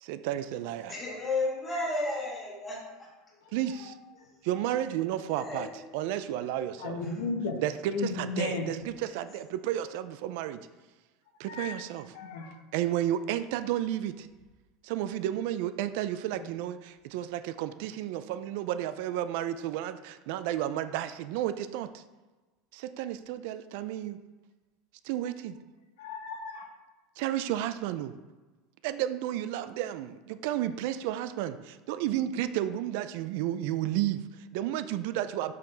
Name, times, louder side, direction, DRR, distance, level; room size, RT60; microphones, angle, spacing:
voice 1, 0.0-1.0 3.5-3.9 4.4-5.7 5.9-7.0 7.6-10.6 11.4-12.1 12.7-14.3 14.8-22.0 22.7-24.2 25.0-25.6 27.2-28.1 28.8-35.5, right 12 dB, 60° right, 12 dB, 0.4 m, -32 dB
voice 2, 0.9-3.1 5.3-5.7 7.0-7.1 9.0-9.2, left 2 dB, 15° left, -4 dB, 1.8 m, -33 dB
voice 3, 6.8-7.6 7.9-8.7 11.5-11.7 12.1-12.6 16.3-16.5 26.0-26.7, left 4 dB, 85° left, 3 dB, 1.3 m, -34 dB
6.5 x 5.7 x 3.9 m, 1.2 s
supercardioid pair, 170°, 0 cm